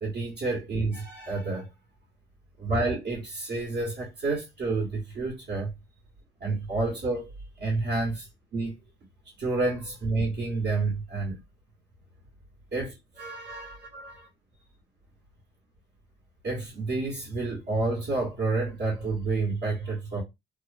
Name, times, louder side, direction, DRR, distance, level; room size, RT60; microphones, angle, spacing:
voice 1, 0.0-1.7 2.6-5.7 6.4-7.3 7.6-8.3 8.5-8.7 9.4-11.4 12.7-14.3 16.4-20.2, right 3 dB, 50° right, 1.2 m, -29 dB
2.8 x 2.2 x 2.5 m
cardioid pair, 90°, 20 cm